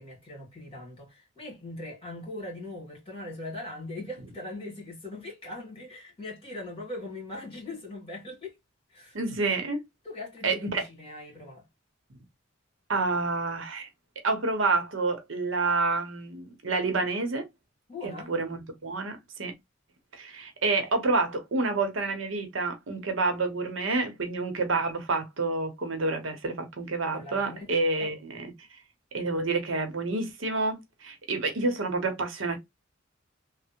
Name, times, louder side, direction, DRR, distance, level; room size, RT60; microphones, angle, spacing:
voice 1, 0.0-8.6 8.9-9.2 10.0-11.7 17.9-18.3 27.1-27.7 28.0-28.1, left 2 dB, 30° left, 2.0 m, -40 dB
voice 2, 9.1-9.8 10.4-10.9 12.9-13.9 14.2-17.5 18.0-19.5 20.1-28.4 29.1-32.6, right 3 dB, 80° right, 0.9 m, -28 dB
3.3 x 2.1 x 2.8 m
head